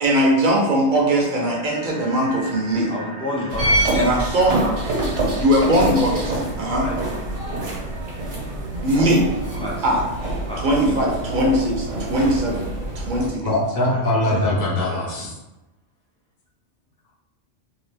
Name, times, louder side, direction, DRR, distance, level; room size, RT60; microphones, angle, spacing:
voice 1, 0.0-2.9 3.9-4.5 5.4-6.9 8.8-9.2 9.8-10.0 10.6-12.7 12.9-13.5, right 1 dB, 45° right, -2 dB, 0.8 m, -20 dB
sound 1, 0.6-9.6, right 2 dB, 90° right, 1.2 m, -41 dB
voice 2, 2.9-3.6 4.4-4.8 6.6-7.6 9.6-9.9 10.5-10.6 13.9-14.4 14.9-15.1, left 1 dB, 5° left, -6 dB, 0.4 m, -31 dB
sound 2, 3.5-13.3, right 2 dB, 70° right, 1.3 m, -26 dB
voice 3, 13.4-15.3, left 1 dB, 45° left, -3 dB, 0.8 m, -22 dB
2.8 x 2.5 x 3.4 m, 1.0 s
omnidirectional pair, 1.3 m